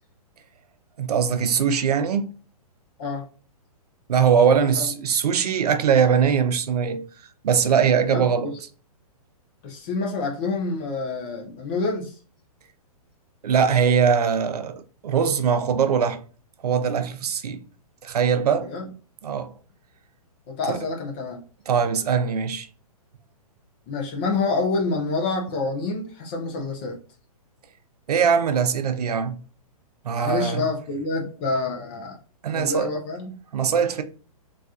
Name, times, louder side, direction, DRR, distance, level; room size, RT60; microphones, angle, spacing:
voice 1, 1.0-2.3 4.1-7.1 7.4-8.5 13.4-16.2 16.6-17.6 18.0-18.7 19.2-19.5 20.7-20.8 21.7-22.7 28.1-29.4 30.0-30.6 32.4-32.9 33.5-34.0, right 7 dB, 85° right, 0.6 m, -21 dB
voice 2, 4.4-4.9 8.0-8.6 9.6-12.2 18.6-18.9 20.5-21.4 23.9-27.0 30.1-32.2 32.5-33.4, left 3 dB, 15° left, 0.3 m, -27 dB
4.0 x 2.4 x 2.3 m
hypercardioid pair, 165°, 20 cm